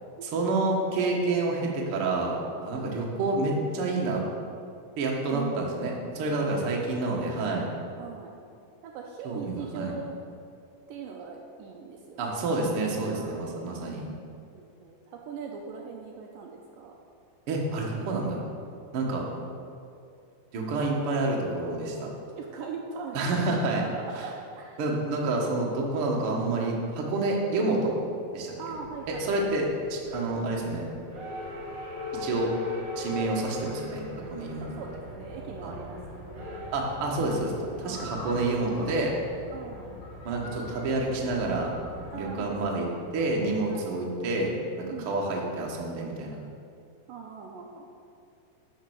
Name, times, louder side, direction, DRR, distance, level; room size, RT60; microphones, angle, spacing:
voice 1, 0.2-2.4 2.6-4.2 5.0-7.7 9.2-9.9 12.2-14.1 17.5-18.4 18.9-19.3 20.5-22.1 23.1-23.8 24.8-28.0 28.3-28.5 29.1-30.8 32.1-32.5 33.0-34.7 35.6-35.7 36.7-37.5 37.8-39.1 40.2-41.7 42.1-42.9 43.1-46.4, right 2 dB, 50° right, -2 dB, 1.7 m, -28 dB
voice 2, 2.6-3.0 5.3-5.8 6.3-6.8 8.0-8.3 8.8-10.2 10.9-12.4 13.2-13.8 14.5-16.9 22.1-23.4 23.8-25.0 28.6-29.5 32.1-32.5 34.6-36.4 37.8-38.2 39.5-39.9 42.1-42.9 43.7-44.1 44.9-45.1 47.1-47.9, right 5 dB, 75° right, 1 dB, 2.3 m, -41 dB
sound 1, 28.7-43.8, left 2 dB, 35° right, 2.1 m, -42 dB
sound 2, 32.6-42.2, left 1 dB, 65° left, 4.0 m, -44 dB
11.5 x 5.6 x 6.4 m, 2.4 s
omnidirectional pair, 4.3 m